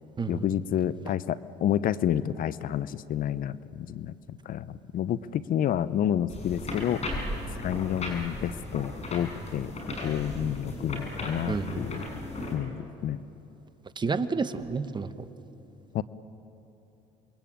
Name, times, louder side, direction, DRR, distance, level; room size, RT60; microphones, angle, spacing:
voice 1, 0.3-7.0 7.6-9.7 10.0-12.0 12.5-13.2 15.9-16.0, left 10 dB, 55° left, 16 dB, 0.8 m, -29 dB
sound 1, 6.3-12.5, left 1 dB, 40° left, 7.1 m, -36 dB
voice 2, 11.5-11.8 14.0-15.3, right 4 dB, 25° right, 11 dB, 1.4 m, -30 dB
27.5 x 22.0 x 8.9 m, 3.0 s
supercardioid pair, 80°, 17 cm